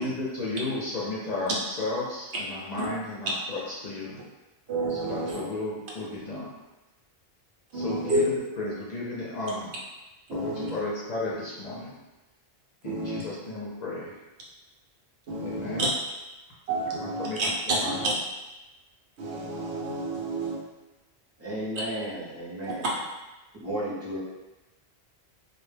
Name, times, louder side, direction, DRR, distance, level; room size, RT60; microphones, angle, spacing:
voice 1, 0.0-4.2 4.9-6.5 7.7-9.8 10.3-11.9 12.8-14.1 15.4-15.9 16.9-18.0, left 2 dB, 55° left, -7 dB, 0.5 m, -34 dB
voice 2, 4.7-5.4 7.7-8.2 10.3-10.7 12.8-13.2 15.3-15.9 16.7-18.1 19.2-20.6, right 2 dB, 80° right, -4 dB, 0.9 m, -29 dB
voice 3, 21.4-22.9 23.5-24.2, right 1 dB, 20° right, -7 dB, 0.5 m, -33 dB
2.1 x 2.1 x 3.1 m, 1.1 s
omnidirectional pair, 1.1 m